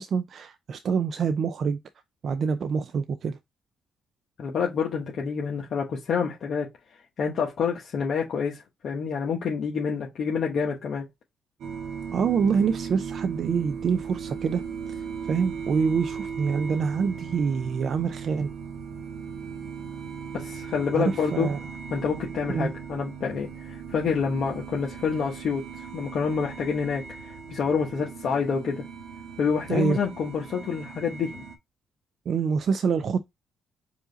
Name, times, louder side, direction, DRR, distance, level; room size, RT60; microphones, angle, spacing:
voice 1, 0.0-1.8 2.2-3.4 12.1-14.6 14.9-18.5 20.9-21.6 22.5-22.7 29.7-30.0 32.3-33.3, right 6 dB, 55° right, 0.4 m, -26 dB
voice 2, 4.4-6.7 7.2-11.1 20.3-21.5 21.9-25.6 25.9-28.8 29.4-31.4, left 6 dB, 60° left, 1.0 m, -28 dB
sound 1, 11.6-31.6, right 6 dB, 75° right, 1.0 m, -38 dB
4.8 x 2.6 x 3.9 m
cardioid pair, 90°, 0 cm